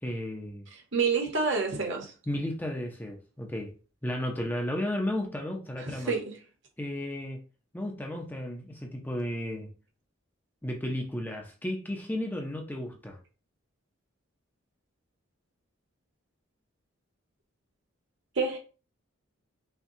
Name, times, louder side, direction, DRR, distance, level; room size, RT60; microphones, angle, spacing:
voice 1, 0.0-0.7 2.3-3.8 4.0-6.1 6.8-7.4 7.7-9.7 10.6-13.2, left 1 dB, 10° left, 0.5 m, -33 dB
voice 2, 0.7-2.1 5.9-6.3 18.3-18.6, right 4 dB, 60° right, 1.1 m, -28 dB
5.7 x 2.3 x 2.7 m
head